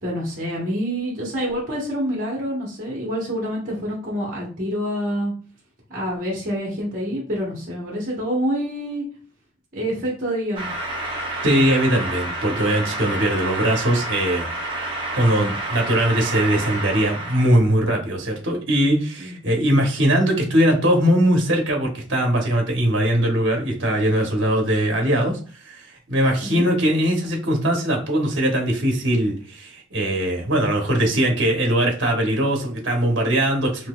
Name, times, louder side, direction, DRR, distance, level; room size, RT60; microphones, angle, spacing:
voice 1, 0.0-5.3 5.9-9.0 9.7-10.7 19.2-19.6 26.4-26.7, equal, 40° right, -4 dB, 1.1 m, -27 dB
sound 1, 10.6-17.5, right 2 dB, 25° right, 0.7 m, -29 dB
voice 2, 11.4-14.5 15.2-25.4 25.6-33.9, right 1 dB, 60° right, 1 dB, 1.0 m, -20 dB
3.9 x 2.8 x 2.3 m, 0.38 s
head